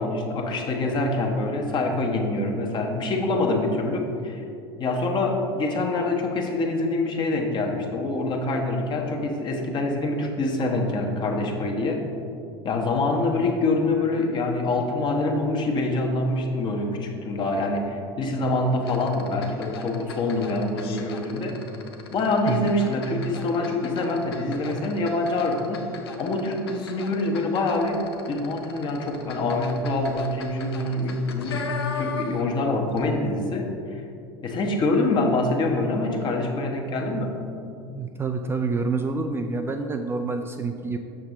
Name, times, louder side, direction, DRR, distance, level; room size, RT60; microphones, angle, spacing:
voice 1, 0.0-4.4 4.8-12.0 12.6-21.6 22.1-25.8 26.2-34.0 34.4-37.3, left 2 dB, 35° left, 2 dB, 1.1 m, -25 dB
sound 1, 18.8-32.6 32.9-33.0, left 5 dB, 75° left, 0.7 m, -38 dB
voice 2, 37.9-41.0, right 4 dB, 20° right, 5 dB, 0.4 m, -27 dB
6.8 x 6.1 x 3.7 m, 2.6 s
figure-of-eight pair, 75°, 13 cm